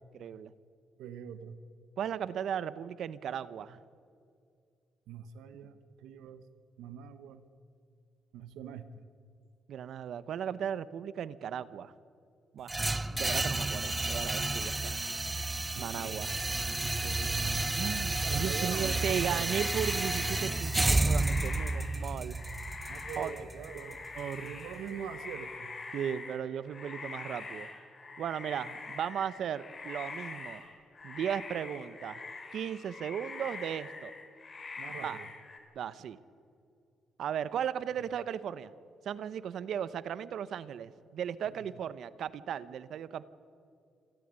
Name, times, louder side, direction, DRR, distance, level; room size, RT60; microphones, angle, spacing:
voice 1, 0.1-0.5 2.0-3.8 5.5-5.7 9.7-11.9 12.5-12.7 13.1-14.9 15.8-16.3 17.7-22.4 23.2-23.3 24.1-24.5 25.9-27.7 28.2-30.6 31.0-32.2 32.5-34.1 34.9-35.2 35.7-36.2 37.2-38.7 39.0-43.2, right 8 dB, 70° right, 16 dB, 1.0 m, -36 dB
voice 2, 1.0-1.6 5.1-6.5 6.8-7.4 8.3-9.0 15.7-16.2 16.8-17.8 18.2-19.5 22.9-24.1 24.4-25.7 34.8-35.3 41.5-41.6, right 8 dB, 90° right, 11 dB, 1.3 m, -44 dB
sound 1, 12.7-24.7, right 2 dB, 15° right, 0.8 m, -31 dB
sound 2, 18.9-35.6, left 4 dB, 35° left, 4.1 m, -44 dB
28.0 x 12.5 x 9.7 m, 2.5 s
cardioid pair, 90°, 0 cm